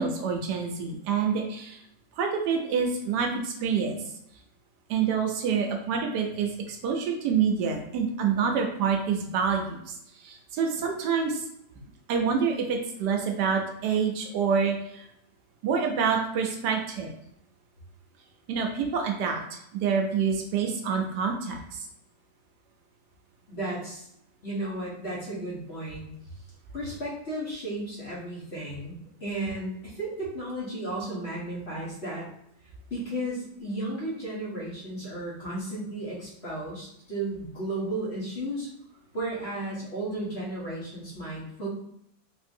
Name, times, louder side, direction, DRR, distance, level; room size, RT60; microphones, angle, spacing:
voice 1, 0.0-1.8 2.2-4.0 4.9-9.8 10.2-11.4 12.1-15.1 15.6-17.1 18.5-19.4 19.7-21.8, right 6 dB, 80° right, 3 dB, 1.1 m, -27 dB
voice 2, 23.5-24.1 24.4-26.3 26.7-32.3 32.9-38.7 39.1-41.7, right 1 dB, 45° left, -6 dB, 1.1 m, -34 dB
3.7 x 2.7 x 2.6 m, 0.74 s
omnidirectional pair, 1.9 m